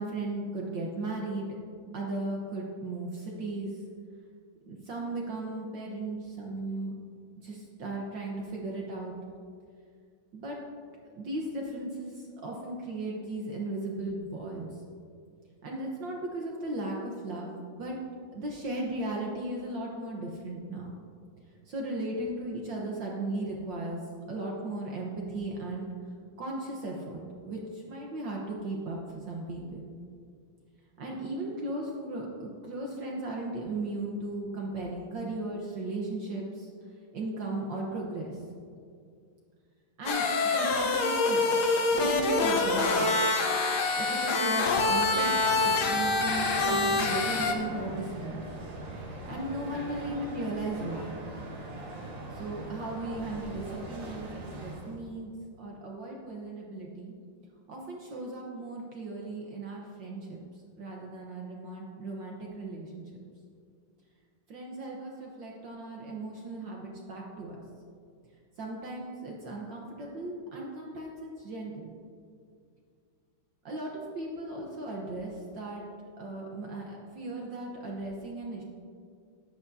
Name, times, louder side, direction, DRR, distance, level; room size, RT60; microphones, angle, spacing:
voice 1, 0.0-1.5 1.9-3.8 4.7-7.0 7.4-9.1 10.3-10.6 11.1-14.7 15.6-17.5 17.8-18.0 18.3-20.9 21.7-24.0 24.3-25.9 26.4-29.9 31.0-36.7 37.1-38.4 40.0-41.6 41.9-43.2 44.0-48.4 49.3-51.2 52.3-55.3 55.6-57.1 57.7-60.4 60.8-63.0 64.5-67.6 68.6-71.9 73.6-75.8 76.2-78.6, right 2 dB, 60° right, -1 dB, 1.7 m, -36 dB
sound 1, 40.1-47.5, left 3 dB, 55° left, 1.4 m, -26 dB
sound 2, 45.3-55.0, right 2 dB, 85° right, 3.2 m, -41 dB
14.0 x 11.0 x 2.7 m, 2.2 s
omnidirectional pair, 2.3 m